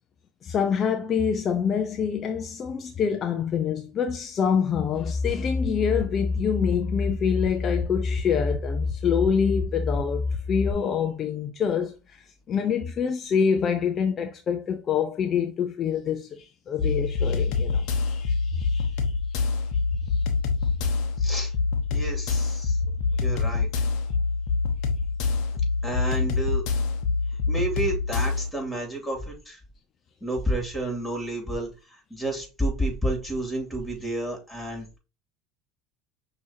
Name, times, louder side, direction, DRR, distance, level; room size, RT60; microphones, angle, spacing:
voice 1, 0.4-19.5 20.1-20.2, left 7 dB, 40° left, 0.5 m, -26 dB
sound 1, 4.9-10.7, left 3 dB, 30° right, 1.0 m, -28 dB
sound 2, 16.8-28.5, left 4 dB, 65° left, 0.9 m, -26 dB
voice 2, 21.2-21.5 21.9-22.8 23.2-23.7 25.8-26.6 27.5-29.6 30.2-35.0, right 1 dB, 5° left, 2.6 m, -30 dB
6.1 x 2.9 x 2.8 m
hypercardioid pair, 85°, 0 cm